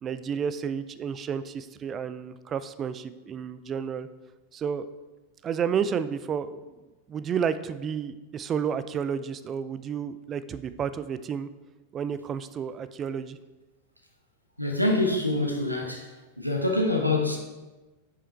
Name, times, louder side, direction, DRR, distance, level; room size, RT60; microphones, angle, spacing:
voice 1, 0.0-4.1 4.5-4.9 5.4-6.6 7.1-11.5 11.9-13.4, right 7 dB, 25° right, 13 dB, 0.4 m, -31 dB
voice 2, 14.6-16.1 16.4-17.4, left 2 dB, 90° right, 2 dB, 1.2 m, -25 dB
9.8 x 5.5 x 4.3 m, 1.2 s
figure-of-eight pair, 90°, 0 cm